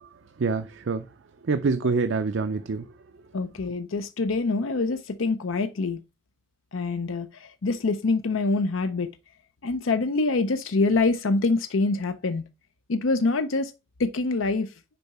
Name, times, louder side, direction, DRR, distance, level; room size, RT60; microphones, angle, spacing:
voice 1, 0.4-1.1 1.5-2.8, right 4 dB, 70° right, 0.5 m, -25 dB
voice 2, 3.3-6.0 6.7-9.1 9.6-12.4 12.9-13.7 14.0-14.7, left 3 dB, 85° left, 0.6 m, -25 dB
6.8 x 4.7 x 4.2 m
head